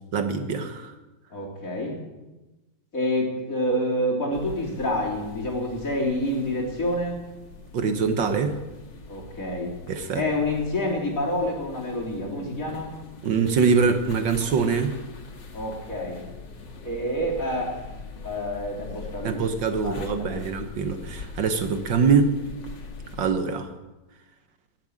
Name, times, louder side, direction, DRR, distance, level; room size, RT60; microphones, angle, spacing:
voice 1, 0.1-0.9 7.7-8.6 9.9-10.3 13.2-15.0 19.2-22.4 23.2-23.7, right 5 dB, 70° right, 8 dB, 1.8 m, -23 dB
voice 2, 1.3-2.0 2.9-7.2 9.1-9.7 10.1-12.9 15.5-16.2 16.8-17.7 18.2-19.4 19.8-20.0 20.4-20.5, left 1 dB, 40° left, -2 dB, 3.9 m, -27 dB
sound 1, 4.3-23.3, left 4 dB, 60° left, 2.4 m, -42 dB
18.0 x 7.9 x 8.7 m, 1.1 s
omnidirectional pair, 2.2 m